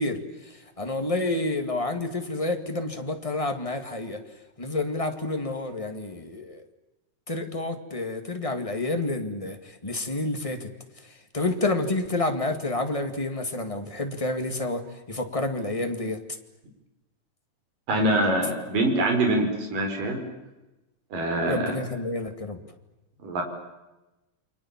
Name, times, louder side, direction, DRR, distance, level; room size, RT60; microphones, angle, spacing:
voice 1, 0.0-4.2 4.6-6.6 7.3-10.7 11.3-16.2 21.5-22.6, left 2 dB, 15° left, 5 dB, 1.4 m, -29 dB
voice 2, 17.9-20.2 21.1-21.7 23.2-23.4, right 1 dB, 75° right, 3 dB, 6.5 m, -24 dB
29.5 x 24.0 x 7.4 m, 1.0 s
omnidirectional pair, 3.9 m